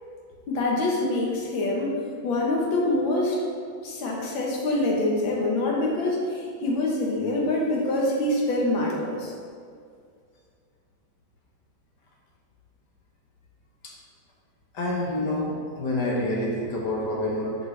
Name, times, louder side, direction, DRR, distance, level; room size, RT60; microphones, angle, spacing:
voice 1, 0.5-2.0 2.2-3.4 3.8-9.3, left 2 dB, 80° left, -2 dB, 1.9 m, -25 dB
voice 2, 14.7-17.6, left 1 dB, 65° left, -3 dB, 1.6 m, -27 dB
8.4 x 5.1 x 3.3 m, 2.2 s
omnidirectional pair, 2.1 m